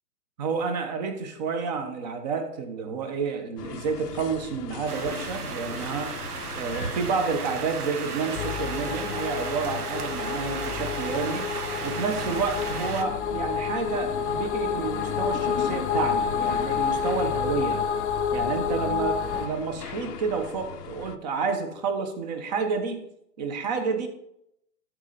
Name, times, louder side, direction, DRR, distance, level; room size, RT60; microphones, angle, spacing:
voice 1, 0.4-6.1 6.5-11.4 11.8-17.8 18.3-23.0 23.4-24.1, right 5 dB, 25° right, 7 dB, 1.0 m, -30 dB
sound 1, 3.6-21.2, left 9 dB, 80° left, 0.8 m, -40 dB
sound 2, 4.9-13.0, right 5 dB, 70° right, 1.2 m, -35 dB
sound 3, 8.3-19.5, left 7 dB, 45° left, 0.8 m, -29 dB
12.5 x 4.5 x 4.1 m, 0.77 s
hypercardioid pair, 145°, 47 cm